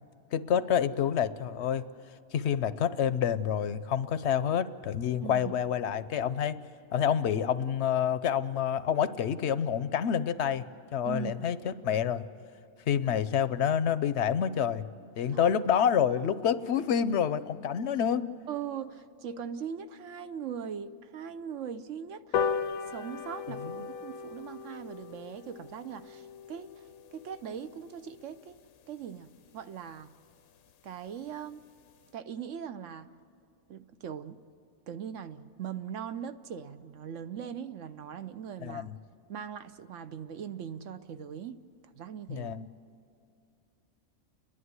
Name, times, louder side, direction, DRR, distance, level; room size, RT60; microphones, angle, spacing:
voice 1, 0.3-1.8 2.3-6.6 6.9-10.7 10.9-12.2 12.9-14.9 15.2-18.2 23.6-23.9 38.6-39.0 42.3-42.7, left 8 dB, 60° left, 14 dB, 0.9 m, -28 dB
voice 2, 5.2-5.5 11.0-11.5 15.3-15.5 18.5-22.5 22.9-26.8 27.1-28.6 28.9-30.1 30.8-31.7 32.1-33.1 33.7-34.4 34.9-38.9 39.3-41.6 41.9-42.5, right 8 dB, 65° right, 11 dB, 1.0 m, -40 dB
sound 1, 22.3-29.1 29.5-29.6 29.9-30.0 30.3-30.4 30.7-30.8 31.1-31.4 31.8-31.9, left 6 dB, 85° left, 1.2 m, -37 dB
30.0 x 11.0 x 9.6 m, 2.6 s
omnidirectional pair, 1.5 m